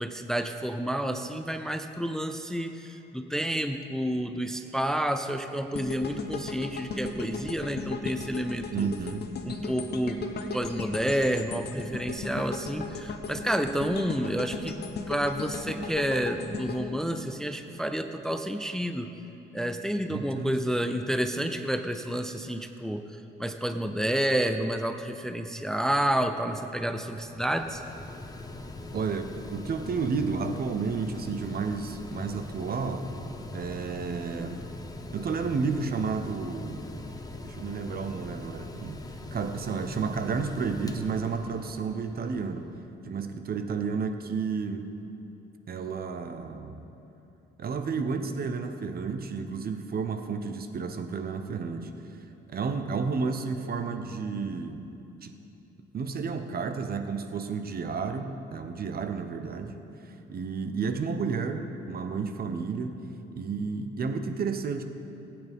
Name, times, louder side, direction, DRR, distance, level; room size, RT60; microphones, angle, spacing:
voice 1, 0.0-8.9 9.4-10.2 10.5-14.8 15.1-19.1 19.5-27.8, equal, 5° left, 7 dB, 0.5 m, -30 dB
sound 1, 5.7-17.9 18.3-18.5, left 3 dB, 55° left, 1.0 m, -37 dB
voice 2, 8.7-9.3 20.1-20.6 28.9-33.1 33.5-34.7 35.1-36.8 37.4-39.0 39.3-42.7 43.0-45.0 45.7-46.9 47.6-51.9 52.5-54.9 55.2-55.3 55.9-63.1 63.3-64.8, right 5 dB, 50° right, 7 dB, 0.9 m, -31 dB
Mechanical fan, 26.5-42.8, left 2 dB, 20° left, 0.9 m, -42 dB
19.5 x 8.8 x 3.6 m, 2.9 s
cardioid pair, 90°, 20 cm